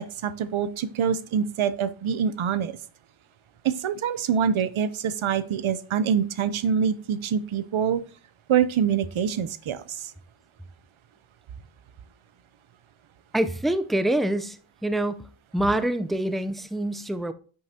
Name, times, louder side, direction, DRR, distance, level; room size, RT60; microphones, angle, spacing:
voice 1, 0.0-2.7 3.6-8.0 8.5-10.1, right 7 dB, 80° right, 0.7 m, -25 dB
voice 2, 13.3-15.3 15.5-17.3, right 1 dB, ahead, 0.5 m, -26 dB
9.3 x 6.5 x 2.8 m
cardioid pair, 60°, 47 cm